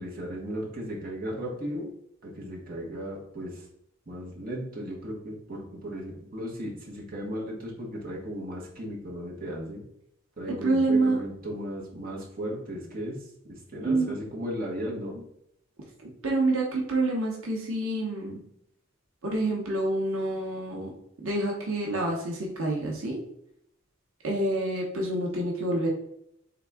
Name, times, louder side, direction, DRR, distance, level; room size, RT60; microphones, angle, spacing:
voice 1, 0.0-1.9 2.2-3.7 4.1-9.8 10.4-15.2, equal, 45° right, -3 dB, 1.3 m, -36 dB
voice 2, 10.5-11.2 13.8-14.1 16.0-18.4 19.2-20.9 21.2-23.2 24.2-25.9, right 2 dB, 80° right, -1 dB, 1.1 m, -27 dB
4.0 x 3.6 x 3.5 m, 0.75 s
head